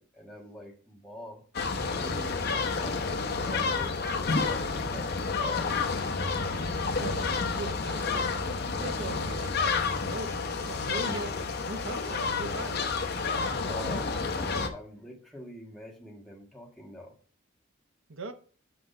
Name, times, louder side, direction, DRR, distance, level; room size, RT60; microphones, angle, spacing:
voice 1, 0.0-1.4 2.0-5.7 13.4-17.1, equal, ahead, 1.5 m, -45 dB
sound 1, 1.5-14.7, left 4 dB, 50° left, 0.9 m, -30 dB
voice 2, 7.0-8.2 8.7-9.6 10.0-12.9 18.1-18.3, right 2 dB, 80° right, 0.8 m, -40 dB
6.1 x 4.9 x 5.4 m
head